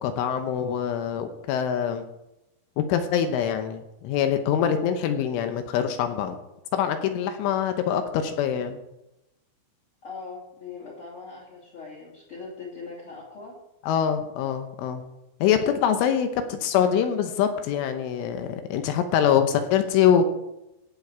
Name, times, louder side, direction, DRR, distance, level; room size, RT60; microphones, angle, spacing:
voice 1, 0.0-2.0 2.8-6.4 6.7-8.8 13.8-15.0 15.4-20.2, left 8 dB, 80° left, 7 dB, 3.2 m, -24 dB
voice 2, 10.0-13.6, left 4 dB, 35° left, -3 dB, 2.5 m, -40 dB
17.5 x 7.6 x 4.7 m, 0.90 s
omnidirectional pair, 6.0 m